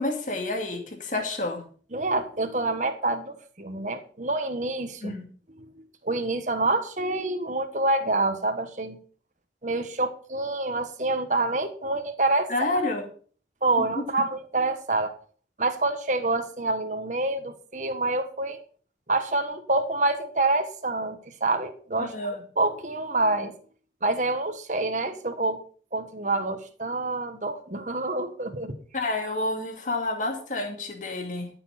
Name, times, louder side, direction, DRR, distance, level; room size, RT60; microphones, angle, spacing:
voice 1, 0.0-1.6 5.0-5.3 12.5-13.1 22.0-22.4 28.9-31.5, left 2 dB, 45° left, 3 dB, 2.4 m, -29 dB
voice 2, 1.9-5.2 6.0-9.0 9.6-12.5 13.6-15.1 15.6-18.6 19.1-23.5 24.0-25.6 25.9-28.7, right 2 dB, 45° right, 7 dB, 1.4 m, -27 dB
14.0 x 7.1 x 5.8 m, 0.44 s
head